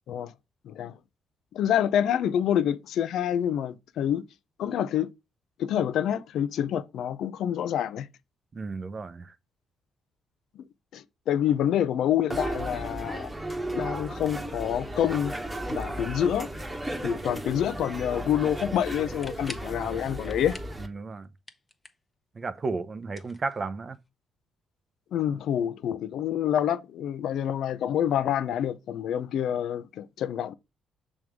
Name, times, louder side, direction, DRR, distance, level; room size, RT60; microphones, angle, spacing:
voice 1, 1.5-4.2 4.6-5.1 5.6-8.1 10.9-13.3 13.7-15.4 15.7-16.5 17.0-20.6 25.1-30.5, left 10 dB, 75° left, 0.6 m, -27 dB
voice 2, 8.5-9.3 20.8-21.3 22.3-24.0, right 4 dB, 35° right, 0.7 m, -33 dB
sound 1, 12.3-20.9, right 1 dB, 15° right, 1.2 m, -35 dB
sound 2, 19.0-19.8 20.2-20.8 21.1-22.1 23.0-24.0, left 3 dB, 20° left, 0.9 m, -45 dB
6.2 x 3.7 x 4.7 m
cardioid pair, 90°, 0 cm